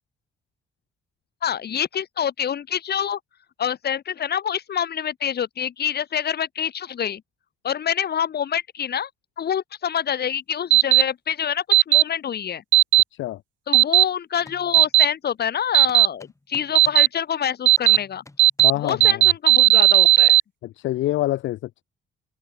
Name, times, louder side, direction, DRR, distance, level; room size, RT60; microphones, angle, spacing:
voice 1, 1.4-3.2 3.6-7.2 7.6-9.1 9.4-12.6 13.7-18.2 18.8-20.4, left 8 dB, 55° left, 1.9 m, -26 dB
sound 1, 10.7-11.0 11.7-12.0 12.7-13.0 13.7-14.0 14.7-15.0 15.7-16.1 16.7-17.1 17.7-18.0 18.4-18.7 19.0-20.4, right 16 dB, 70° right, 0.4 m, -14 dB
sound 2, 14.4-15.0 15.7-17.1 17.8-19.2, left 2 dB, 15° left, 4.2 m, -46 dB
voice 2, 18.6-19.3 20.6-21.8, left 15 dB, 75° left, 0.6 m, -26 dB
cardioid pair, 90°, 20 cm